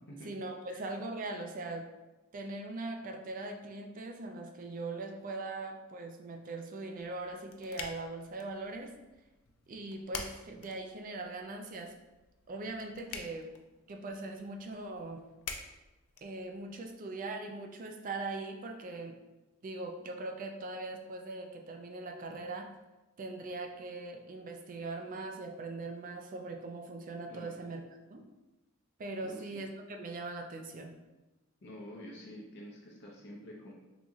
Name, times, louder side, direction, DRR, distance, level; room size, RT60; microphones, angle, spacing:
voice 1, 0.2-1.9 2.3-8.9 9.7-11.9 12.5-13.5 13.9-15.2 16.2-19.1 19.6-22.7 23.2-27.8 28.1-28.2 29.0-30.9, right 2 dB, 40° right, 4 dB, 0.4 m, -41 dB
sound 1, 7.0-16.9, left 5 dB, 85° left, 0.4 m, -48 dB
voice 2, 29.2-29.6 31.6-33.7, equal, 55° left, -3 dB, 0.7 m, -48 dB
3.9 x 2.9 x 2.3 m, 1.1 s
head